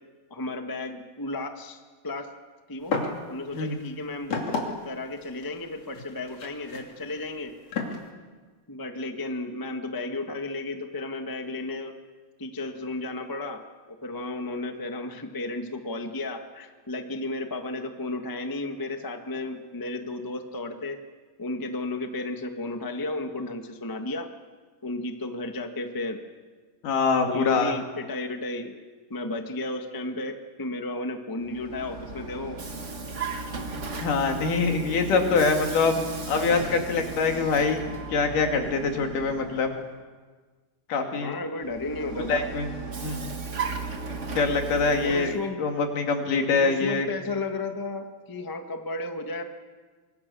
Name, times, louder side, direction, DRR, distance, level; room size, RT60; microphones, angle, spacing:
voice 1, 0.3-2.3 2.7-3.0 3.3-4.3 4.8-7.5 8.7-11.9 12.4-13.6 14.0-21.0 21.4-24.3 24.8-26.2 27.2-28.7 29.1-32.6 35.1-35.4 41.2-42.5 45.0-45.6 46.6-49.4, left 2 dB, 25° left, 4 dB, 0.5 m, -33 dB
sound 1, 2.9-3.2 3.5-8.0, left 4 dB, 50° left, 3.8 m, -32 dB
voice 2, 26.8-27.7 34.0-36.0 36.3-37.8 38.1-39.7 40.9-41.4 42.3-42.7 43.0-43.2 44.4-47.1, left 4 dB, 65° left, 3 dB, 3.9 m, -24 dB
Vehicle, 31.4-39.9 41.6-45.5, right 3 dB, 35° right, 1.2 m, -36 dB
25.5 x 24.5 x 7.0 m, 1.4 s
omnidirectional pair, 4.0 m